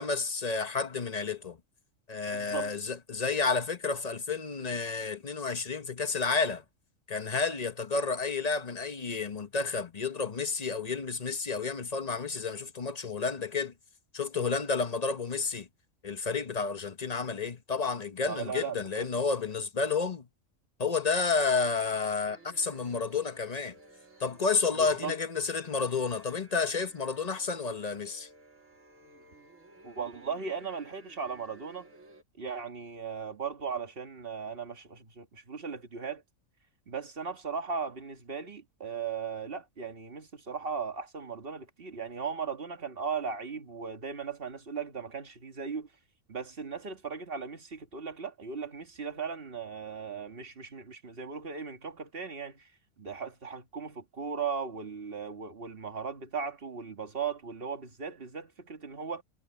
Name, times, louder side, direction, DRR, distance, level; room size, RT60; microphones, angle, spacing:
voice 1, 0.0-1.6 2.1-6.6 7.1-13.7 14.1-15.7 16.0-20.3 20.8-23.7 24.2-28.3, left 4 dB, 35° left, 1.1 m, -31 dB
voice 2, 2.3-2.8 18.3-19.1 24.8-25.2 29.8-31.9 32.4-36.2 36.9-45.9 46.3-52.7 53.0-59.2, right 5 dB, 45° right, 2.0 m, -37 dB
sound 1, 22.2-32.2, right 2 dB, 80° right, 3.1 m, -56 dB
omnidirectional pair, 1.3 m